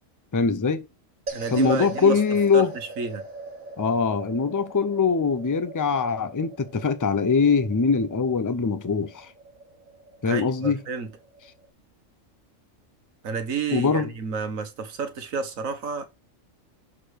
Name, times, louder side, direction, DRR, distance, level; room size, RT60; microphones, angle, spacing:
voice 1, 0.3-0.9 1.5-2.7 3.8-9.3 10.2-10.8 13.7-14.1, left 5 dB, 25° left, 0.4 m, -22 dB
sound 1, 1.3-11.7, right 3 dB, 40° right, 1.6 m, -41 dB
voice 2, 1.3-2.2 2.5-2.6 3.0-3.2 10.3-11.1 13.2-16.0, right 5 dB, 85° right, 1.6 m, -30 dB
6.6 x 4.9 x 6.4 m
omnidirectional pair, 1.4 m